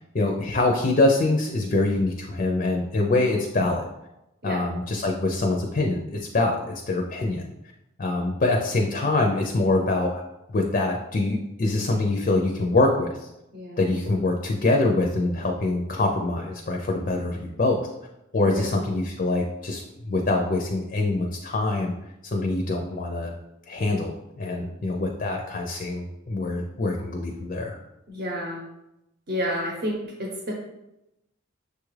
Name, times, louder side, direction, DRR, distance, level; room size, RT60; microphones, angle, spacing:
voice 1, 0.1-3.9 4.4-7.4 8.0-10.2 10.5-13.3 13.8-17.8 18.3-19.8 20.1-21.9 22.2-23.3 23.7-27.8, left 2 dB, 40° left, 1 dB, 0.4 m, -24 dB
voice 2, 13.5-14.0 18.5-18.7 28.1-28.6 29.3-30.5, equal, 50° right, -2 dB, 0.8 m, -30 dB
6.5 x 2.3 x 3.2 m, 0.90 s
head